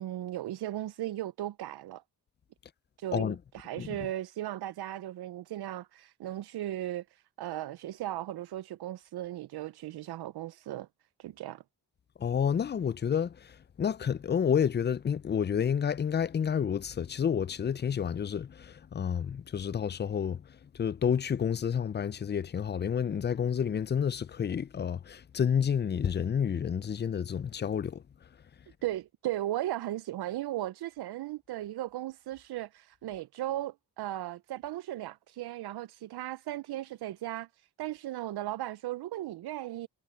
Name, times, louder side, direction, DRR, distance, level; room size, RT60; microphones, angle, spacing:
voice 1, 0.0-2.0 3.0-10.9 11.2-11.6 28.8-39.9, right 14 dB, 85° right, 0.5 m, -37 dB
voice 2, 12.2-20.4 20.7-28.0, left 7 dB, 30° left, 0.4 m, -30 dB
cardioid pair, 65°, 37 cm